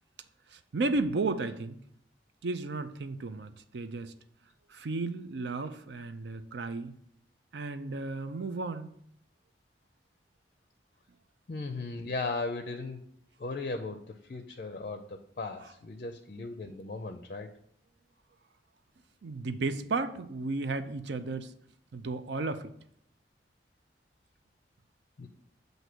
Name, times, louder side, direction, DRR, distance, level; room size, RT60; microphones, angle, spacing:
voice 1, 0.5-1.8 2.4-4.1 4.7-6.9 7.5-8.9 19.2-21.5 21.9-22.7, right 3 dB, 70° right, 10 dB, 0.5 m, -33 dB
voice 2, 11.5-13.1 13.4-17.5 25.2-25.3, left 3 dB, 45° left, 7 dB, 0.4 m, -37 dB
8.0 x 2.7 x 5.9 m, 0.69 s
head